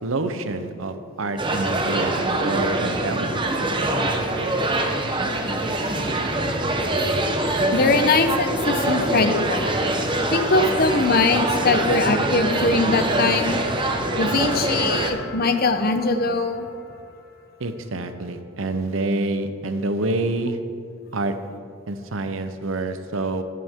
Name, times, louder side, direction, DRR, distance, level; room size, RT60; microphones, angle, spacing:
voice 1, 0.0-3.4 17.6-20.6 21.1-21.3 21.9-23.4, right 2 dB, 85° right, 9 dB, 0.8 m, -27 dB
sound 1, 1.4-15.1, right 1 dB, 25° right, 0.9 m, -24 dB
voice 2, 7.7-9.8 10.3-13.6 14.2-16.7, left 3 dB, 50° left, 8 dB, 0.8 m, -21 dB
sound 2, 8.0-18.1, left 1 dB, 80° left, 2.9 m, -41 dB
13.0 x 13.0 x 3.7 m, 2.4 s
head